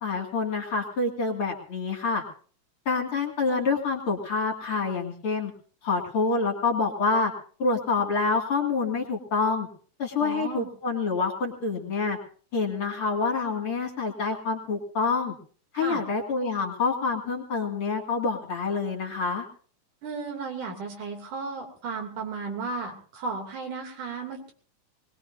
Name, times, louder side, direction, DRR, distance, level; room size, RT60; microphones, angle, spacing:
voice 1, 0.0-2.2 2.9-5.5 5.8-7.3 7.6-9.7 10.0-12.2 12.5-15.3 15.7-19.5, left 4 dB, 45° left, 2 dB, 3.0 m, -27 dB
voice 2, 10.2-10.7 15.7-16.0 20.0-24.5, right 4 dB, 85° right, 2 dB, 4.4 m, -34 dB
21.0 x 20.5 x 2.7 m, 0.42 s
omnidirectional pair, 3.4 m